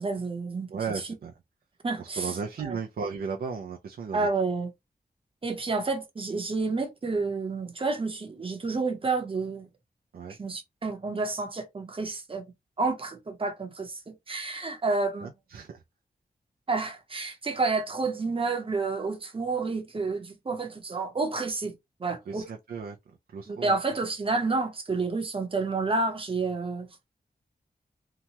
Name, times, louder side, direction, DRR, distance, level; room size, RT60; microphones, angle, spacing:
voice 1, 0.0-0.8 1.8-2.3 2.6-2.8 4.1-4.7 5.4-9.7 10.4-12.4 12.8-15.3 16.7-21.7 22.0-22.5 23.5-26.9, right 3 dB, 35° right, 0.8 m, -29 dB
voice 2, 0.7-1.3 2.0-4.3 10.1-10.4 15.2-15.8 22.3-23.0 23.3-23.8, right 5 dB, 80° right, 0.4 m, -35 dB
2.8 x 2.2 x 2.8 m
wide cardioid pair, 95°, 16 cm